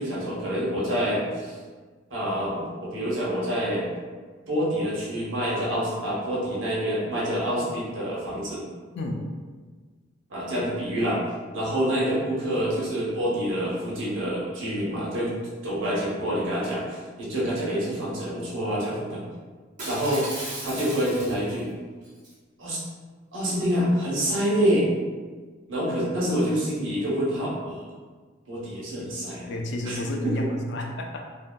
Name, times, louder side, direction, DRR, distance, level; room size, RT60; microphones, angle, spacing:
voice 1, 0.0-1.5 2.1-3.8 4.5-8.6 10.3-11.2 11.5-15.3 15.6-19.2 19.8-20.2 20.6-21.7 22.6-22.8 23.3-24.9 25.7-27.9 28.5-29.5 29.9-30.0 30.2-30.3, equal, 85° right, -7 dB, 0.8 m, -27 dB
Shatter, 19.8-21.6 22.0-22.3, right 2 dB, 40° right, 1.0 m, -36 dB
voice 2, 29.4-31.3, left 1 dB, 65° left, 2 dB, 0.4 m, -30 dB
2.6 x 2.6 x 2.2 m, 1.4 s
head